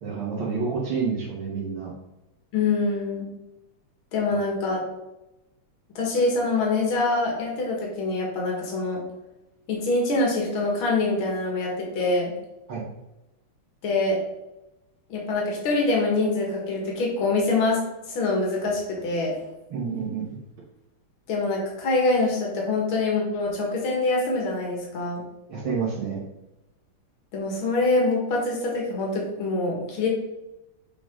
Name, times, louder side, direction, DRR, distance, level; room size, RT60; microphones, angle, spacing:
voice 1, 0.0-1.9 12.7-12.8 19.7-20.4 25.5-26.2, right 5 dB, 70° right, -6 dB, 2.0 m, -29 dB
voice 2, 2.5-3.3 4.1-4.8 6.0-9.0 9.7-12.3 13.8-14.2 15.1-17.8 18.1-19.3 21.3-25.2 27.3-30.1, left 3 dB, 70° left, -2 dB, 2.5 m, -25 dB
6.8 x 5.3 x 3.6 m, 0.96 s
omnidirectional pair, 2.4 m